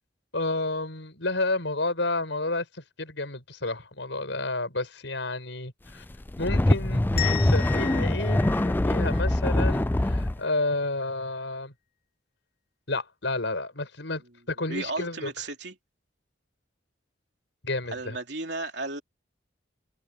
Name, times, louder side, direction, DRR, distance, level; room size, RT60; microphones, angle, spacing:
voice 1, 0.3-2.7 3.0-6.0 6.4-11.7 12.9-15.3 17.6-18.2, left 2 dB, 80° left, 5.7 m, -31 dB
sound 1, 6.1-10.4, left 1 dB, 10° left, 0.3 m, -23 dB
sound 2, 7.2-9.9, left 13 dB, 55° left, 2.5 m, -36 dB
voice 2, 14.7-15.8 17.9-19.0, right 2 dB, 65° right, 3.4 m, -34 dB
head